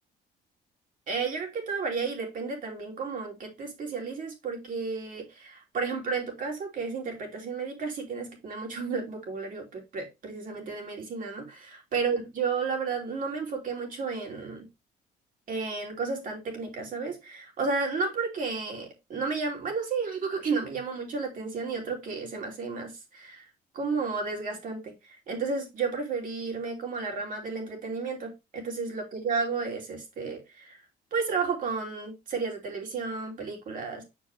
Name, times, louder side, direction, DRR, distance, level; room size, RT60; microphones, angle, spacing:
voice 1, 1.1-14.7 15.5-23.5 23.7-30.8 31.1-34.0, right 4 dB, 50° right, 2.6 m, -32 dB
6.6 x 4.6 x 3.4 m
cardioid pair, 110°, 17 cm